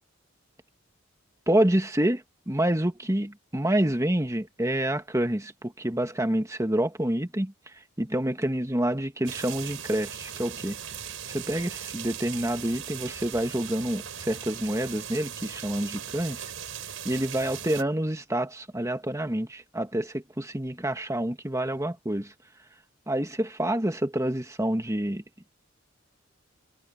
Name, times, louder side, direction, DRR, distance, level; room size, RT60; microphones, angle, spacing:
voice 1, 1.5-7.5 8.0-10.8 11.3-16.5 17.0-22.3 23.1-25.2, right 1 dB, 15° right, 1.7 m, -27 dB
sound 1, 9.2-17.8, right 9 dB, 65° right, 6.0 m, -39 dB
head